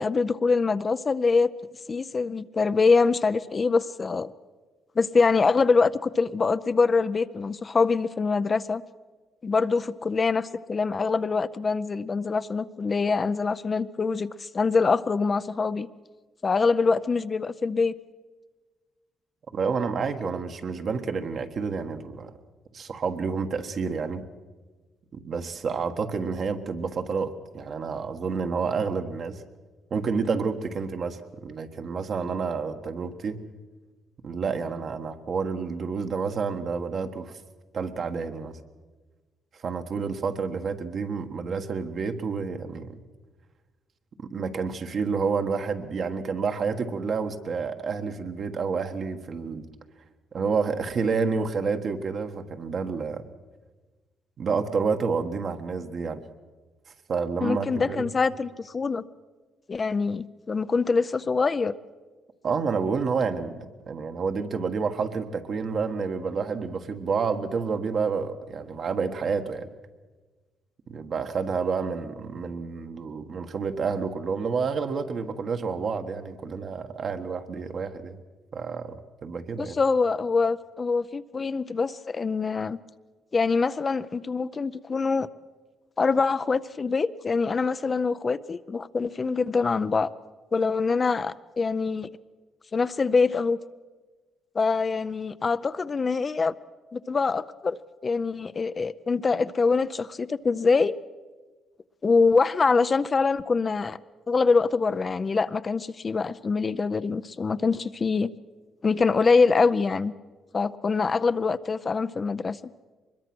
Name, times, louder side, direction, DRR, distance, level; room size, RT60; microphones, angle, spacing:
voice 1, 0.0-1.5 1.9-4.3 5.0-8.8 9.4-15.9 16.4-17.9 57.4-59.0 59.7-61.7 79.6-82.8 83.3-85.3 86.0-90.1 90.5-92.1 92.7-93.6 94.5-96.5 96.9-101.0 102.0-104.0 104.3-108.3 108.8-110.1 110.5-112.6, left 4 dB, 35° left, 13 dB, 0.6 m, -24 dB
voice 2, 19.5-22.4 22.7-24.2 25.1-29.4 29.9-33.4 34.2-37.4 37.7-38.6 39.6-43.0 44.2-49.7 50.3-53.2 54.4-56.2 57.1-58.1 62.4-69.7 70.9-78.2 78.5-79.8, right 5 dB, 55° right, 6 dB, 1.5 m, -29 dB
23.5 x 21.5 x 6.1 m, 1.3 s
cardioid pair, 90°, 0 cm